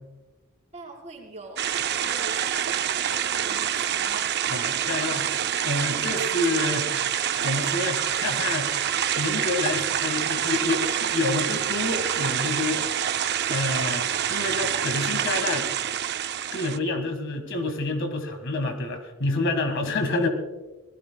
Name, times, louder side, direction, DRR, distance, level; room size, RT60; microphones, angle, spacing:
voice 1, 0.7-1.7 2.0-4.3, right 2 dB, 30° right, 0 dB, 3.8 m, -43 dB
sound 1, 1.6-16.8, right 9 dB, 50° right, 0.5 m, -26 dB
voice 2, 4.5-7.0 7.4-8.8 9.2-12.8 13.5-15.7 16.5-20.3, left 2 dB, 55° left, 5 dB, 1.8 m, -28 dB
27.5 x 18.5 x 2.3 m, 1.2 s
head